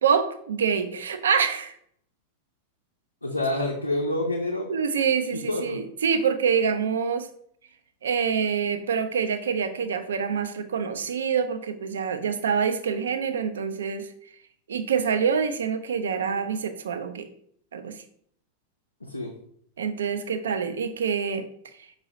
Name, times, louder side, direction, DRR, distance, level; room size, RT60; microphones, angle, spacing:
voice 1, 0.0-1.7 4.7-7.3 8.0-14.1 14.7-17.3 17.7-18.0 19.8-21.5, right 6 dB, 65° right, 9 dB, 0.4 m, -26 dB
voice 2, 3.2-4.7 5.3-5.8 19.0-19.3, left 1 dB, 85° left, -1 dB, 0.5 m, -28 dB
5.3 x 2.7 x 3.0 m, 0.65 s
figure-of-eight pair, 90°, 0 cm